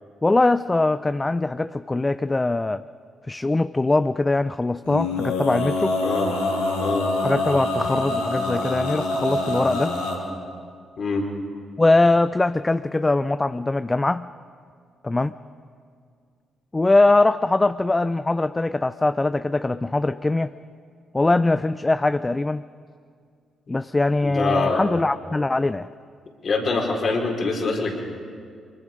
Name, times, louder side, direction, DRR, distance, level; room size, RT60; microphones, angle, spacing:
voice 1, 0.2-2.8 3.3-6.0 7.2-10.0 11.8-14.3 15.0-15.3 16.7-20.5 21.1-22.6 23.7-25.9, left 2 dB, 20° left, 14 dB, 0.5 m, -21 dB
Male singing, 4.8-10.2, left 2 dB, 85° left, 3.2 m, -25 dB
voice 2, 24.2-24.9 26.4-28.0, left 3 dB, 50° left, 1 dB, 4.2 m, -24 dB
25.0 x 23.5 x 5.2 m, 2.2 s
hypercardioid pair, 40°, 0 cm